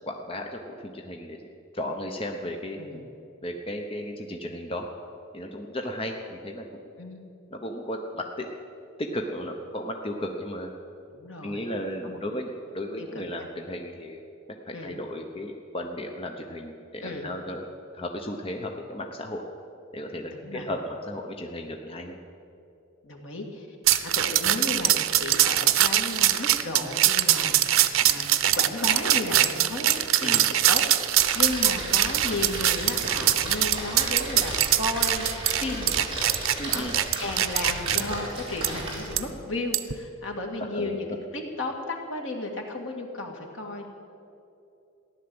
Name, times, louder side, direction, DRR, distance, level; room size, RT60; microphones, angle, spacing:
voice 1, 0.1-1.4 1.7-2.8 3.4-4.9 5.3-6.7 7.5-8.4 9.0-10.7 11.4-14.2 14.7-17.6 17.9-19.4 19.9-22.2 30.2-30.4 36.6-36.9 40.7-41.1, left 1 dB, 25° left, 2 dB, 0.9 m, -34 dB
voice 2, 11.1-11.7 12.0-12.2 13.0-13.5 14.7-14.9 17.0-17.3 20.3-20.7 23.0-23.7 24.0-28.3 28.5-29.9 30.2-36.9 37.2-43.9, left 2 dB, 75° left, 2 dB, 2.2 m, -34 dB
sound 1, 23.9-38.0 38.6-38.7 39.2-39.3 39.7-39.9, right 12 dB, 85° right, 0.6 m, -22 dB
Splash splatter, 31.2-39.3, right 1 dB, 25° right, 4.0 m, -35 dB
15.0 x 11.0 x 7.9 m, 2.7 s
head